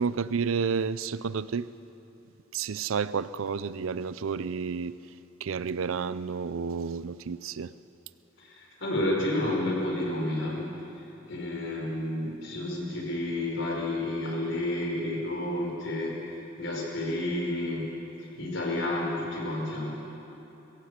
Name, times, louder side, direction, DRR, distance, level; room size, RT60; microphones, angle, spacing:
voice 1, 0.0-1.7 2.5-5.0 5.4-7.7, right 5 dB, 75° right, 0.5 m, -30 dB
voice 2, 8.4-10.6 11.3-16.1 16.6-17.9 18.3-19.9, left 1 dB, 60° left, 5.0 m, -30 dB
22.0 x 15.0 x 8.2 m
head